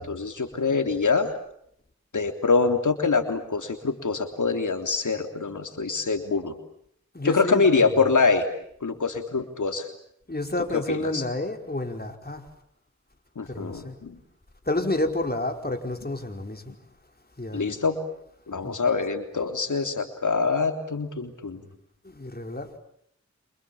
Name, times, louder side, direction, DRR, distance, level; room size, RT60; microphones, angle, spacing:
voice 1, 0.0-1.3 2.1-6.5 7.2-8.5 8.8-9.9 10.7-11.2 13.4-14.2 17.5-18.0 18.5-21.6, left 4 dB, 85° left, 3.4 m, -25 dB
voice 2, 7.1-8.1 10.3-12.4 13.5-13.9 14.7-16.7 17.4-17.8 18.6-18.8 22.0-22.7, left 2 dB, 30° left, 5.0 m, -30 dB
29.0 x 28.0 x 7.3 m
cardioid pair, 45°, 30 cm